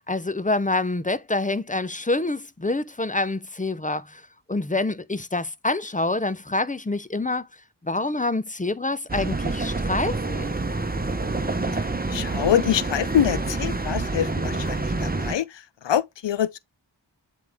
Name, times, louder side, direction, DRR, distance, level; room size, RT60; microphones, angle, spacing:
voice 1, 0.1-4.2 4.5-7.5 7.8-10.5, left 2 dB, 20° left, 0.6 m, -26 dB
sound 1, 9.1-15.3, right 3 dB, 20° right, 0.9 m, -27 dB
voice 2, 11.7-16.6, left 10 dB, 80° left, 0.6 m, -25 dB
7.6 x 3.6 x 3.5 m
wide cardioid pair, 45°, 43 cm